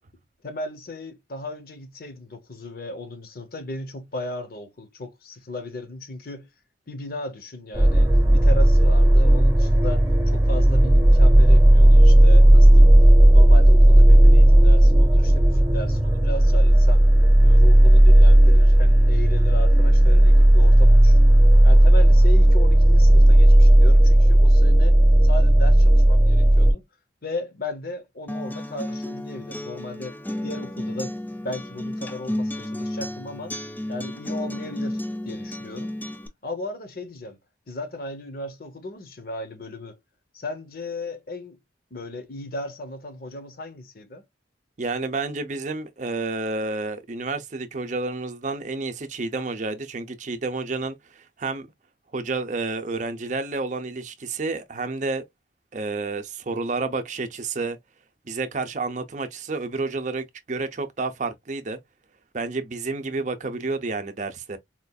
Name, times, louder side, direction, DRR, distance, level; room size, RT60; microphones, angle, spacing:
voice 1, 0.4-6.5 6.9-12.9 13.3-17.1 17.4-21.2 21.6-26.8 27.2-30.2 30.4-31.2 31.4-33.6 33.9-35.9 36.4-37.4 37.7-40.0 40.3-41.6 41.9-44.2, left 2 dB, 50° left, 0.9 m, -36 dB
sound 1, 7.7-26.7, right 1 dB, 15° right, 0.9 m, -13 dB
Acoustic guitar, 28.3-36.3, left 1 dB, 10° left, 0.4 m, -32 dB
voice 2, 44.8-51.7 52.1-55.2 55.7-57.8 58.3-61.8 62.3-64.6, right 3 dB, 40° right, 0.6 m, -30 dB
4.3 x 2.5 x 2.3 m
head